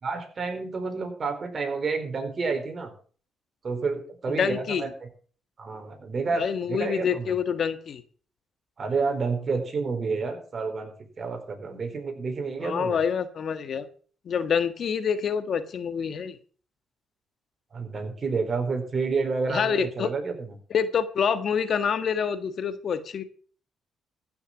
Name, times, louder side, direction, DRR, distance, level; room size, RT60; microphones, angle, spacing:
voice 1, 0.0-2.9 3.6-4.9 5.6-6.4 6.7-7.3 8.8-10.9 11.2-13.0 17.7-20.6, right 4 dB, 40° right, 6 dB, 4.3 m, -29 dB
voice 2, 4.3-4.8 6.3-8.0 12.6-13.9 14.2-16.4 19.5-20.1 20.7-23.2, left 7 dB, 55° left, 11 dB, 1.5 m, -27 dB
15.0 x 7.1 x 7.2 m, 0.42 s
cardioid pair, 90°, 0 cm